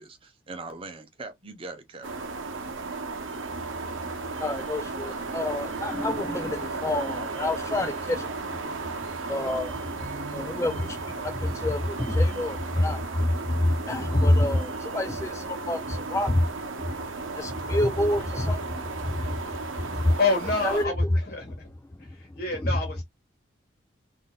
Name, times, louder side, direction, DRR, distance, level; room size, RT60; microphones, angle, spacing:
voice 1, 0.0-2.1, right 3 dB, 25° right, 0.7 m, -41 dB
sound 1, 2.0-20.9, right 3 dB, 80° right, 0.8 m, -35 dB
voice 2, 4.3-20.2 20.6-20.8 22.0-22.7, left 1 dB, 15° left, 0.3 m, -28 dB
voice 3, 20.2-21.7 22.0-23.0, left 3 dB, 50° left, 1.5 m, -28 dB
3.7 x 2.6 x 2.3 m
head